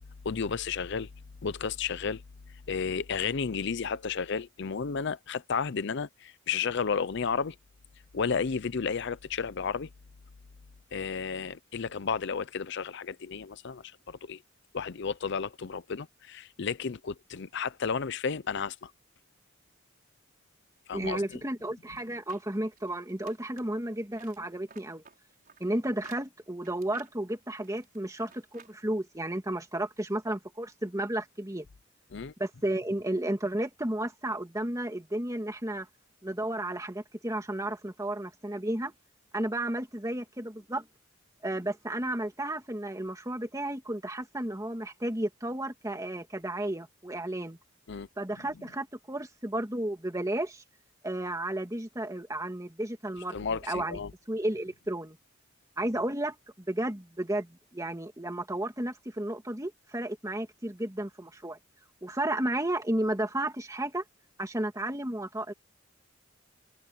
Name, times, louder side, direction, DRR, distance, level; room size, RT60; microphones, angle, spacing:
voice 1, 0.2-1.1 1.4-2.2 2.7-7.6 8.1-9.9 10.9-14.4 14.7-18.9 20.9-21.4 32.1-32.3 47.9-48.1 53.3-54.1, left 5 dB, 60° left, 0.6 m, -32 dB
voice 2, 20.9-25.0 25.6-31.7 32.4-35.9 36.2-38.9 39.3-40.9 41.4-47.6 48.2-50.6 51.0-54.0 54.3-55.2 55.8-61.6 62.0-64.0 64.4-65.5, right 1 dB, 15° right, 2.1 m, -33 dB
sound 1, 21.8-23.8 24.1-28.8 29.1-29.2, right 6 dB, 45° right, 5.2 m, -56 dB
open air
head